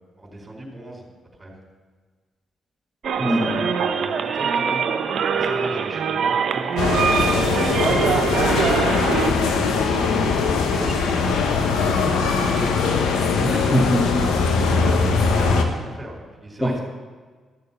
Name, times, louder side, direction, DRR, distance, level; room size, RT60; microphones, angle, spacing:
voice 1, 0.2-1.1 1.4-1.5 3.1-4.8 5.3-8.8 9.4-12.6 14.7-16.8, right 1 dB, 25° right, 0 dB, 4.5 m, -37 dB
sound 1, 3.0-9.3, right 6 dB, 65° right, 0.8 m, -23 dB
voice 2, 3.2-3.7 13.4-14.2 16.6-16.8, equal, 15° left, 0 dB, 1.6 m, -22 dB
sound 2, 6.8-15.6, left 4 dB, 75° left, 1.1 m, -21 dB
13.5 x 6.7 x 7.2 m, 1.5 s
hypercardioid pair, 45°, 0 cm